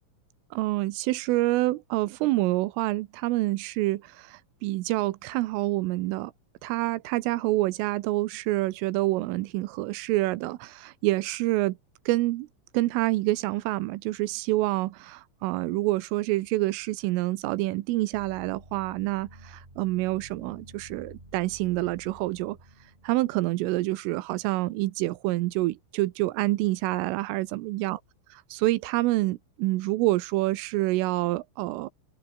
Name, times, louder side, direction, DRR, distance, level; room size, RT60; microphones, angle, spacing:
voice 1, 0.5-6.3 6.6-11.8 12.1-12.5 12.7-22.6 23.0-28.0 28.5-31.9, right 18 dB, 80° right, 3.4 m, -27 dB
sound 1, 18.1-23.9, right 1 dB, 10° right, 6.6 m, -51 dB
open air
omnidirectional pair, 6.0 m